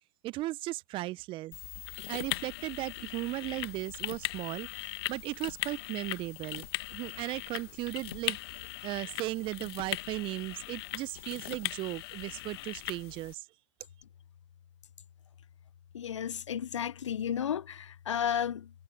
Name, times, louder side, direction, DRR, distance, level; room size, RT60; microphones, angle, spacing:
voice 1, 0.2-1.6 2.1-13.5, right 18 dB, 35° right, 0.9 m, -37 dB
sound 1, 1.5-13.3, left 18 dB, 55° left, 1.7 m, -39 dB
voice 2, 15.9-18.7, left 9 dB, 75° left, 0.5 m, -33 dB
figure-of-eight pair, 105°, 16 cm